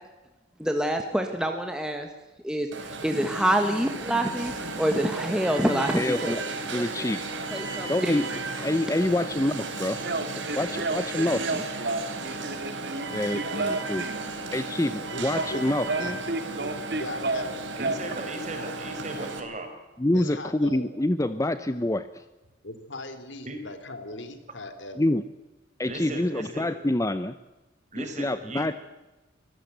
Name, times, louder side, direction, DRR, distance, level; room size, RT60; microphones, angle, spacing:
voice 1, 0.6-2.1 2.4-6.3 6.7-6.8 7.5-8.1, right 1 dB, 5° right, 4 dB, 1.5 m, -26 dB
Alarm, 2.7-19.4, right 3 dB, 75° right, 3.9 m, -34 dB
voice 2, 5.9-7.2 7.9-8.2 8.6-10.1 10.6-11.7 13.1-14.0 14.5-16.2 20.0-22.3 25.0-25.2 25.8-27.4 28.0-28.7, left 1 dB, 15° left, 12 dB, 0.6 m, -27 dB
voice 3, 10.0-14.2 15.4-15.5 15.9-17.4 17.8-18.0, right 2 dB, 60° right, 8 dB, 2.6 m, -32 dB
voice 4, 16.5-17.6 20.1-20.9 22.6-25.0, left 2 dB, 75° left, 9 dB, 3.1 m, -39 dB
voice 5, 17.8-19.7 23.4-23.6 25.9-26.7 27.9-28.7, right 2 dB, 40° right, 4 dB, 4.9 m, -37 dB
24.0 x 16.5 x 8.1 m, 1.1 s
head